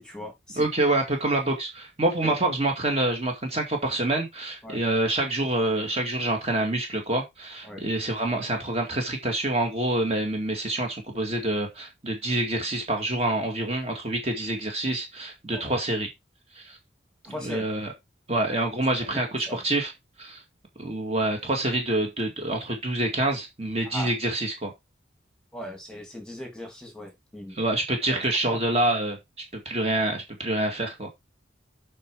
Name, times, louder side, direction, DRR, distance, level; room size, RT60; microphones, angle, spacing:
voice 1, 0.0-0.7 2.2-2.3 4.6-4.8 7.6-7.8 15.5-15.6 17.2-17.7 19.1-19.6 23.9-24.1 25.5-27.6 28.1-28.6, equal, 5° left, 2.7 m, -39 dB
voice 2, 0.6-16.1 16.5-16.8 17.4-17.9 18.3-19.9 20.2-20.4 20.8-24.7 27.5-29.2 29.7-31.1, right 1 dB, 35° right, 2.0 m, -26 dB
8.3 x 5.5 x 4.7 m
head